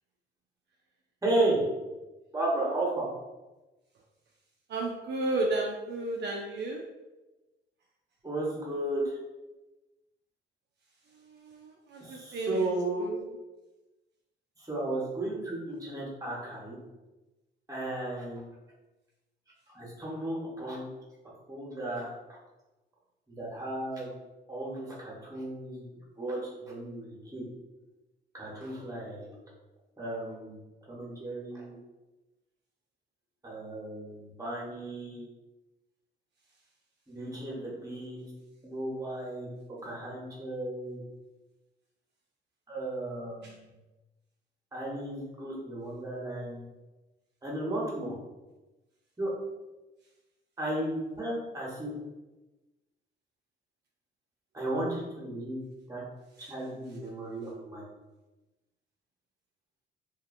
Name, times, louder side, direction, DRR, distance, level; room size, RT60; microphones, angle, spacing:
voice 1, 1.2-1.6 2.3-3.1 8.2-9.2 12.0-13.0 14.6-16.8 17.7-18.4 19.7-20.8 21.5-22.1 23.3-24.1 24.5-25.8 26.2-27.4 28.3-29.4 30.0-30.6 30.9-31.8 33.4-35.3 37.1-38.3 38.6-39.5 39.8-41.0 42.7-43.7 44.7-46.6 47.4-48.1 49.2-49.3 50.6-51.9 54.5-55.6 55.9-56.0 56.4-57.8, right 2 dB, 15° right, -5 dB, 1.1 m, -34 dB
voice 2, 4.7-6.8 11.1-12.7 13.0-13.3 43.4-43.6 56.4-56.5, right 2 dB, 60° right, 0 dB, 0.4 m, -33 dB
2.6 x 2.4 x 2.5 m, 1.1 s
cardioid pair, 90°, 20 cm